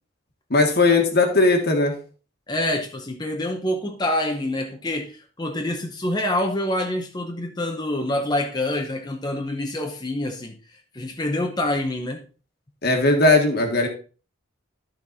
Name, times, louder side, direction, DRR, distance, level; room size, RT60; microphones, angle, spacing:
voice 1, 0.5-1.9 12.8-13.9, left 2 dB, 50° left, 1.5 m, -18 dB
voice 2, 2.5-12.2, left 1 dB, 20° left, 0.8 m, -26 dB
13.0 x 4.6 x 4.1 m
head